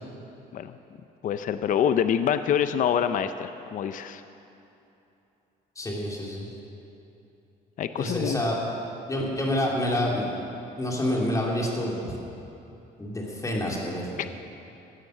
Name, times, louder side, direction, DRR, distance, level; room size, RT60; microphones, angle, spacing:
voice 1, 1.2-4.2 7.8-8.4 14.2-14.3, left 8 dB, 50° left, 10 dB, 0.6 m, -26 dB
voice 2, 5.8-6.5 8.0-8.6 9.1-10.3 10.8-12.0 13.0-14.0, left 1 dB, 20° left, -2 dB, 2.9 m, -27 dB
16.5 x 9.2 x 6.5 m, 2.8 s
cardioid pair, 110°, 17 cm